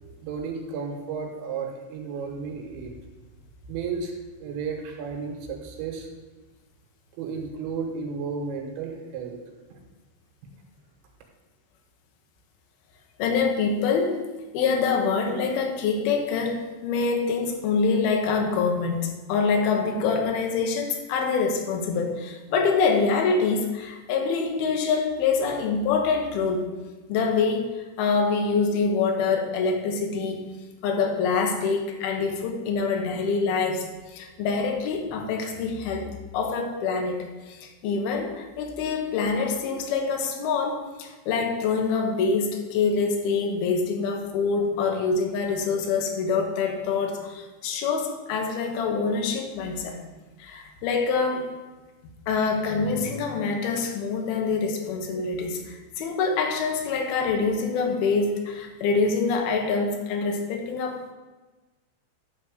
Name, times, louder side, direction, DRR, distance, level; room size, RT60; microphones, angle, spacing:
voice 1, 0.0-2.9 3.7-4.1 4.4-6.1 7.2-9.4 9.7-9.8, right 5 dB, 75° right, 2 dB, 3.3 m, -33 dB
voice 2, 13.2-14.2 14.5-26.7 27.1-30.5 30.8-50.1 50.4-51.5 52.3-61.1, left 4 dB, 70° left, 2 dB, 2.5 m, -25 dB
12.0 x 4.2 x 6.5 m, 1.2 s
omnidirectional pair, 5.7 m